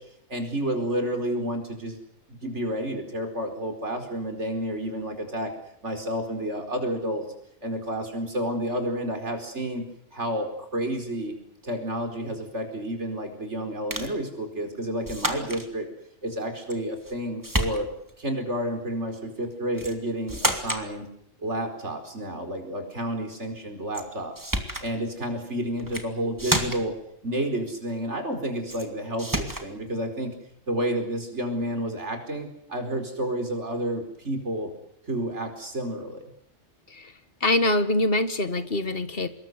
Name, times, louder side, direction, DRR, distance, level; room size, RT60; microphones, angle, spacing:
voice 1, 0.3-1.9 2.4-5.5 5.8-7.2 7.6-9.8 10.1-11.3 11.6-15.9 16.2-17.9 18.2-21.1 21.4-24.5 24.8-26.9 27.2-30.3 30.7-34.7 35.0-36.2, right 1 dB, 60° right, 6 dB, 5.1 m, -30 dB
sound 1, 13.9-14.2 15.0-15.7 16.7-17.2 17.4-18.1 19.8-20.0 20.3-20.9 23.9-24.0 24.3-24.9 25.8-26.1 26.4-27.0 28.7-28.9 29.2-29.7, right 1 dB, 15° right, 2.4 m, -29 dB
voice 2, 37.4-39.3, left 2 dB, 45° left, 10 dB, 1.8 m, -24 dB
25.5 x 21.5 x 8.1 m, 0.72 s
omnidirectional pair, 1.3 m